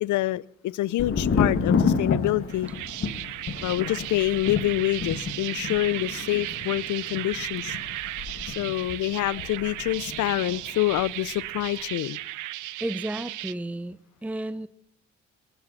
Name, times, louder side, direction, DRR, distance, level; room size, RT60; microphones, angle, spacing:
voice 1, 0.0-2.7 3.6-7.7 8.5-12.2, left 15 dB, 75° left, 21 dB, 0.6 m, -26 dB
Thunder, 1.0-10.6 10.9-11.6, left 5 dB, 45° left, 2.2 m, -29 dB
sound 1, 2.5-13.5, right 16 dB, 85° right, 0.6 m, -35 dB
voice 2, 12.8-14.7, right 1 dB, 5° right, 15 dB, 0.6 m, -32 dB
19.5 x 13.0 x 4.2 m, 0.69 s
cardioid pair, 90°, 30 cm